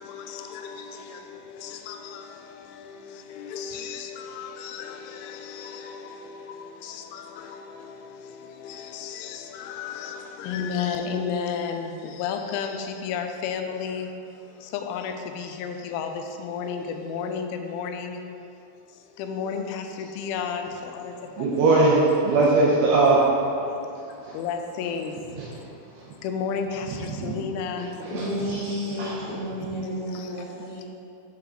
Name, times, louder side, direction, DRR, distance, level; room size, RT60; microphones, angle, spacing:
voice 1, 0.0-18.2 18.9-21.5 23.6-24.0 24.3-28.0 29.8-30.3 30.7-30.8, left 6 dB, 85° left, 5 dB, 3.0 m, -33 dB
voice 2, 21.4-23.2 24.3-24.4 27.2-27.3 29.0-29.1, right 3 dB, 80° right, -5 dB, 2.4 m, -19 dB
voice 3, 28.1-30.8, equal, 60° left, -14 dB, 1.4 m, -31 dB
10.5 x 3.7 x 3.7 m, 2.6 s
omnidirectional pair, 5.4 m